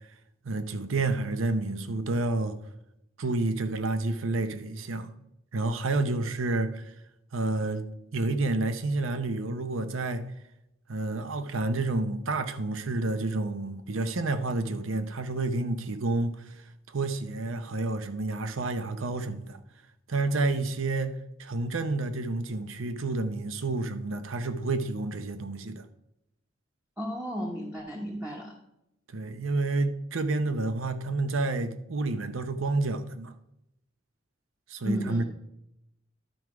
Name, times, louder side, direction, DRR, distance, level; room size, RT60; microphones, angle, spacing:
voice 1, 0.4-2.6 3.2-5.1 5.5-6.9 7.3-7.8 8.1-10.2 10.9-16.6 16.9-19.6 20.1-25.8 29.1-33.3 34.7-35.2, right 2 dB, 75° right, 0.7 m, -29 dB
voice 2, 27.0-28.6 34.8-35.2, equal, 10° right, 0.9 m, -33 dB
11.5 x 4.7 x 4.8 m
head